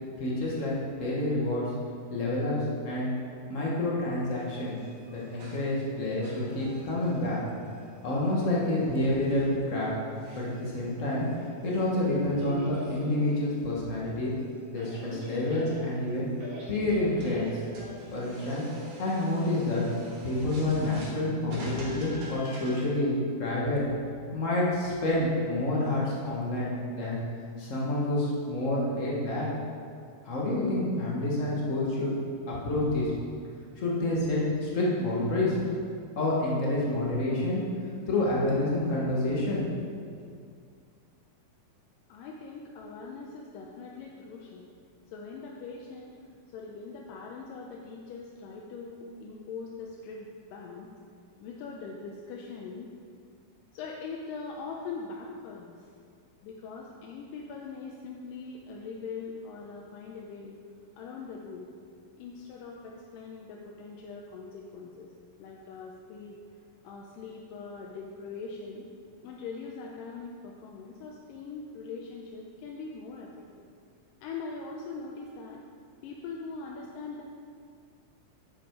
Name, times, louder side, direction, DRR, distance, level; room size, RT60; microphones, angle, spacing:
voice 1, 0.2-1.6 2.1-2.6 2.8-3.1 3.5-4.8 5.1-7.4 8.0-9.9 10.3-11.3 11.6-14.3 14.7-16.3 16.7-17.6 18.1-18.6 19.0-19.8 20.2-23.8 24.3-27.2 27.6-29.5 30.2-32.1 32.5-33.1 33.8-35.6 36.1-37.6 38.1-39.6 40.0-40.1, left 1 dB, 65° left, -5 dB, 0.7 m, -28 dB
sound 1, 4.3-22.9, equal, 85° right, 3.9 m, -46 dB
voice 2, 42.1-44.7 45.1-46.1 46.5-50.9 51.4-52.9 53.7-55.9 56.4-60.6 61.0-61.7 62.2-65.1 65.4-66.4 66.8-68.8 69.2-73.7 74.2-75.6 76.0-77.2, left 4 dB, 85° left, -1 dB, 2.3 m, -41 dB
10.0 x 7.0 x 4.6 m, 2.2 s
omnidirectional pair, 3.9 m